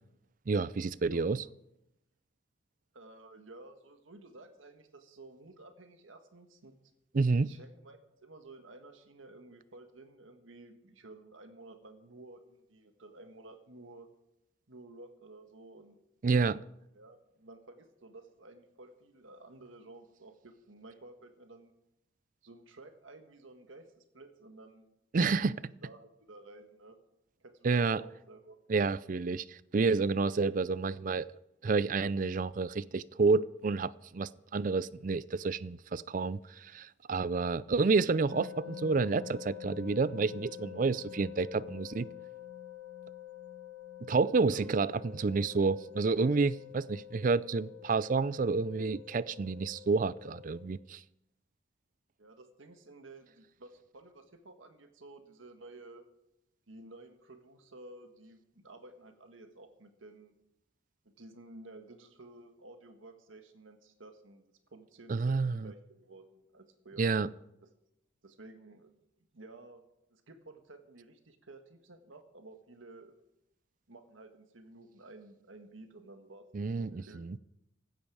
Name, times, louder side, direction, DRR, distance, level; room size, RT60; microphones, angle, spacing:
voice 1, 0.5-1.4 7.1-7.5 16.2-16.6 25.1-25.7 27.6-28.0 28.7-31.3 31.6-42.1 44.0-51.0 65.1-65.7 67.0-67.3 76.5-77.4, right 4 dB, 45° right, 0.4 m, -29 dB
voice 2, 1.1-1.5 2.9-6.7 7.4-14.1 14.7-16.0 16.9-21.7 22.4-24.9 25.6-27.0 27.4-28.6 44.4-45.0 52.2-56.1 56.7-60.3 61.0-67.1 67.6-67.7 68.2-68.9 69.3-69.8 70.1-73.1 73.9-76.4 76.8-77.2, right 2 dB, 85° right, 1.6 m, -53 dB
sound 1, 38.3-50.6, left 10 dB, 65° left, 2.0 m, -47 dB
16.0 x 12.5 x 4.9 m
head